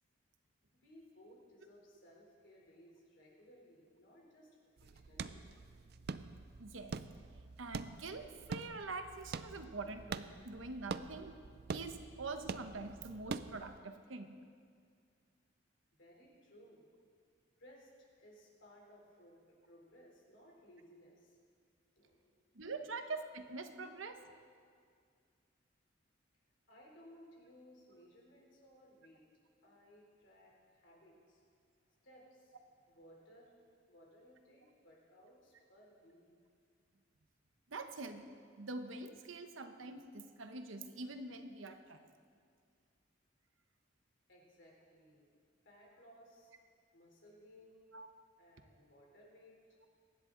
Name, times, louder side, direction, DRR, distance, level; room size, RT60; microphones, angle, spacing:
voice 1, 0.8-4.5 4.8-5.4 16.0-16.9 17.6-21.4 21.9-22.3 26.7-29.3 29.6-31.4 32.0-36.3 44.3-45.4 45.6-46.5 46.9-47.9 48.4-49.6, equal, 65° left, -2 dB, 3.5 m, -61 dB
sound 1, 4.8-13.8, right 4 dB, 55° right, 0.4 m, -45 dB
voice 2, 6.6-7.0 7.6-11.4 11.7-14.4 22.5-24.2 37.7-38.3 38.6-42.1 47.9-48.1, right 3 dB, 80° right, 7 dB, 1.0 m, -45 dB
23.5 x 10.5 x 3.9 m, 2.1 s
head